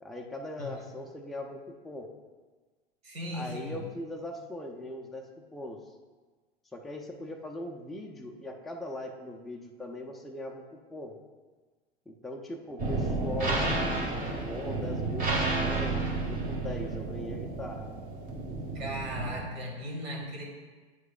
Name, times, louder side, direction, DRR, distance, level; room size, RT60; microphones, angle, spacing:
voice 1, 0.0-2.1 3.3-5.3 5.5-5.8 6.7-11.1 12.1-14.2 14.5-15.3 15.6-17.9, left 1 dB, ahead, 0 dB, 0.4 m, -40 dB
voice 2, 3.0-3.9 18.7-20.5, equal, 75° right, -2 dB, 1.7 m, -37 dB
sound 1, 12.8-19.4, right 3 dB, 25° right, 1.3 m, -31 dB
9.2 x 4.7 x 2.3 m, 1.4 s
figure-of-eight pair, 90°, 31 cm